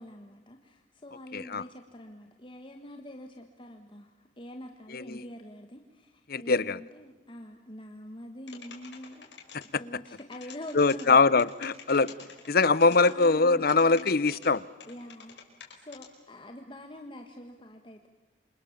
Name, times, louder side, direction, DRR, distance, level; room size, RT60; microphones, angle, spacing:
voice 1, 0.0-9.3 9.7-11.4 13.0-14.1 14.9-15.4 15.7-18.1, left 1 dB, 30° left, 4 dB, 1.7 m, -45 dB
voice 2, 1.3-1.6 4.9-5.2 6.3-6.8 10.7-12.1 12.5-14.6, left 4 dB, 55° left, 19 dB, 0.8 m, -23 dB
sound 1, 8.5-9.7 10.1-11.0 11.4-13.3 13.7-14.5 14.8-16.1, left 7 dB, 80° left, 5.2 m, -47 dB
28.5 x 27.0 x 7.4 m, 1.3 s
head